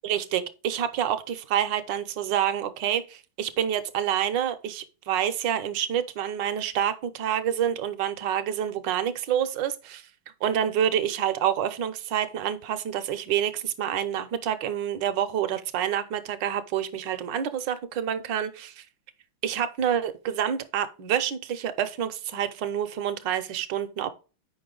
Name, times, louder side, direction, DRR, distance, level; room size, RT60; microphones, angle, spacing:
voice 1, 0.0-10.0 10.4-18.8 19.4-24.1, right 9 dB, 70° right, 1.2 m, -28 dB
8.6 x 5.4 x 3.8 m
omnidirectional pair, 2.4 m